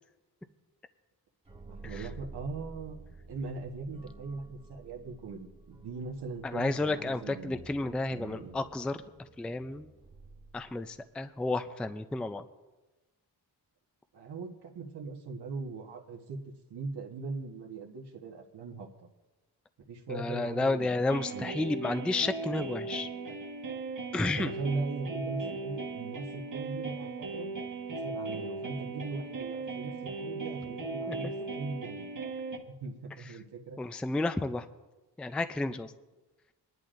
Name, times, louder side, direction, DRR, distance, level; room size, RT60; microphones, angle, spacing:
sound 1, 1.4-11.1, right 3 dB, 15° right, 1.4 m, -51 dB
voice 1, 1.7-3.0 3.3-7.7 8.1-8.5 14.1-16.4 16.7-18.9 19.9-21.5 24.2-27.5 27.9-32.1 32.8-33.8, right 3 dB, 75° right, 0 dB, 1.4 m, -40 dB
voice 2, 6.5-9.0 9.4-9.9 10.5-12.4 20.1-23.1 24.1-24.5 31.1-31.3 33.8-34.7 35.2-35.9, left 2 dB, 5° left, 10 dB, 0.3 m, -31 dB
sound 2, 21.1-32.6, right 3 dB, 50° right, 1.4 m, -38 dB
22.5 x 11.0 x 2.5 m, 1.1 s
wide cardioid pair, 115°, 40 cm